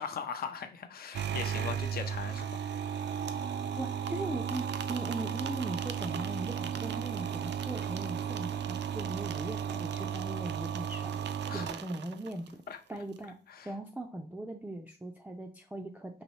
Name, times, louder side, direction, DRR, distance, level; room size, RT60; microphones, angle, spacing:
voice 1, 0.0-3.0 11.5-11.7 12.7-12.8 13.5-13.7, left 7 dB, 60° left, 6 dB, 0.5 m, -40 dB
sound 1, 1.1-12.5, right 8 dB, 85° right, 0.4 m, -35 dB
voice 2, 3.8-12.6 12.9-13.4 13.6-16.2, right 1 dB, 10° right, 1 dB, 0.4 m, -39 dB
5.4 x 3.1 x 3.0 m, 0.38 s
wide cardioid pair, 150°, 18 cm